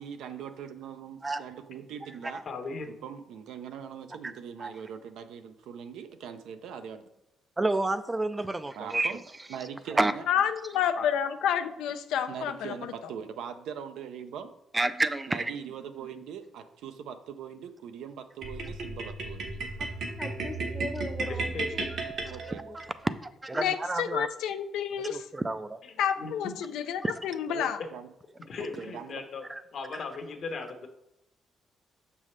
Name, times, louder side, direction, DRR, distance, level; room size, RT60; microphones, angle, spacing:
voice 1, 0.0-2.4 2.9-7.0 8.7-9.2 9.5-10.2 12.3-14.5 15.3-19.6 22.3-22.6 27.5-28.1 28.6-29.2, right 8 dB, 85° right, 9 dB, 0.5 m, -41 dB
voice 2, 2.5-2.9 11.0-11.1 21.5-21.9 26.2-26.5 28.5-29.4 29.7-30.9, left 4 dB, 60° left, 5 dB, 1.0 m, -37 dB
voice 3, 7.6-9.2 9.9-10.1 14.7-15.5 22.5-22.6 23.0-24.3 25.1-25.8 27.0-27.1 29.5-29.6 29.9-30.0, right 2 dB, 20° right, 12 dB, 0.3 m, -29 dB
voice 4, 10.3-12.9 23.6-25.2 26.0-27.8, left 9 dB, 90° left, 8 dB, 0.4 m, -29 dB
sound 1, 18.4-22.9, right 3 dB, 65° right, 1.2 m, -34 dB
voice 5, 19.8-21.9 22.5-22.8, left 2 dB, 20° left, 8 dB, 0.7 m, -40 dB
6.3 x 5.4 x 3.2 m, 0.83 s
cardioid pair, 90°, 0 cm